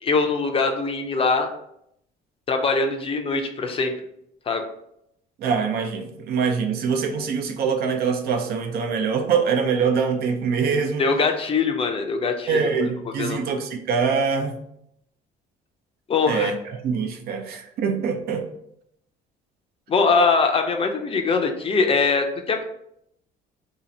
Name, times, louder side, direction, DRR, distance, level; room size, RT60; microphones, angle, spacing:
voice 1, 0.0-1.5 2.5-3.9 4.5-4.6 11.0-12.6 13.2-13.4 16.1-16.5 19.9-22.6, left 4 dB, 35° left, 4 dB, 0.5 m, -22 dB
voice 2, 5.4-11.0 12.5-14.6 16.3-18.4, right 5 dB, 65° right, 5 dB, 0.6 m, -24 dB
2.7 x 2.4 x 4.1 m, 0.75 s
cardioid pair, 110°, 17 cm